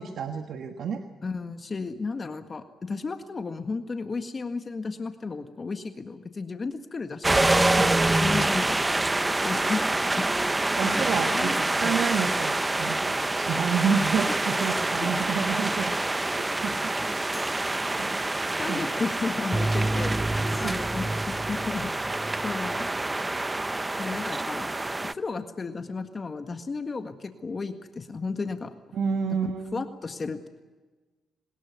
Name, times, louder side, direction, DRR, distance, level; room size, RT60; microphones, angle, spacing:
voice 1, 0.0-1.0 10.7-15.9 16.3-17.3 17.6-18.2 18.7-18.9 20.6-20.8 28.9-29.8, right 6 dB, 75° right, 6 dB, 1.5 m, -30 dB
voice 2, 1.2-8.8 9.4-10.2 10.8-11.9 13.2-13.3 15.2-15.4 18.6-20.2 20.6-22.9 24.0-24.7 25.1-28.7 29.4-30.5, left 4 dB, 40° left, 7 dB, 1.7 m, -34 dB
sound 1, 7.2-25.1, right 2 dB, 20° right, 0.8 m, -26 dB
sound 2, 11.6-11.8 14.6-15.0 17.3-17.7 20.5-20.9, left 2 dB, 10° left, 3.6 m, -47 dB
24.0 x 20.5 x 9.5 m, 1.3 s
cardioid pair, 75°, 0 cm